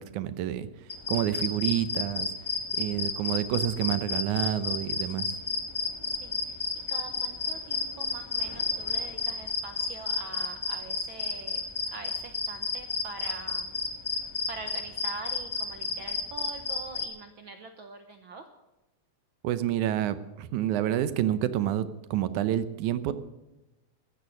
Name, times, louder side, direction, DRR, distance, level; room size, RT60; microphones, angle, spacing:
voice 1, 0.0-2.3 2.8-5.4 19.4-23.1, right 11 dB, 90° right, 13 dB, 2.3 m, -29 dB
sound 1, 0.9-17.1, left 4 dB, 15° left, 0.9 m, -31 dB
voice 2, 6.1-6.6 6.9-11.6 11.9-13.7 14.1-18.5, right 3 dB, 65° right, 6 dB, 1.3 m, -44 dB
15.5 x 13.0 x 6.5 m, 0.99 s
omnidirectional pair, 3.4 m